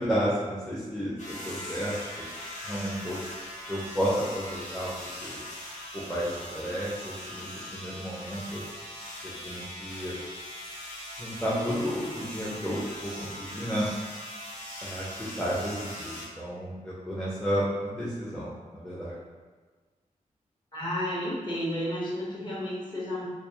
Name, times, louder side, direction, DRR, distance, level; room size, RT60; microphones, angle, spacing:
voice 1, 0.0-2.2 2.6-3.2 3.7-4.9 5.2-5.4 5.9-8.6 9.2-10.1 11.2-13.9 14.8-15.0 15.4-19.2, equal, 5° left, -8 dB, 0.5 m, -32 dB
sound 1, 1.2-16.3, left 1 dB, 60° left, 0.9 m, -41 dB
voice 2, 20.7-23.3, equal, 30° left, -7 dB, 1.0 m, -32 dB
2.3 x 2.3 x 2.7 m, 1.4 s
cardioid pair, 70°, 14 cm